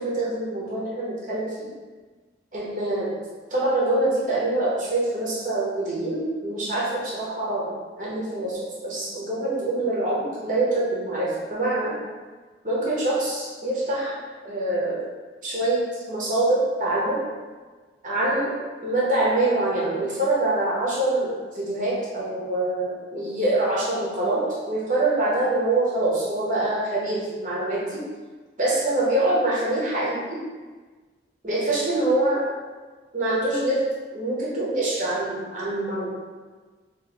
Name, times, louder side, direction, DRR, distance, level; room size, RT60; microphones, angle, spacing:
voice 1, 0.0-1.7 2.5-3.2 3.5-7.7 8.0-11.9 12.6-14.2 14.4-15.1 15.4-17.2 18.0-18.6 18.8-28.0 28.6-30.4 31.4-32.5 33.1-36.2, right 2 dB, 45° right, -6 dB, 0.9 m, -25 dB
2.8 x 2.6 x 3.8 m, 1.4 s
head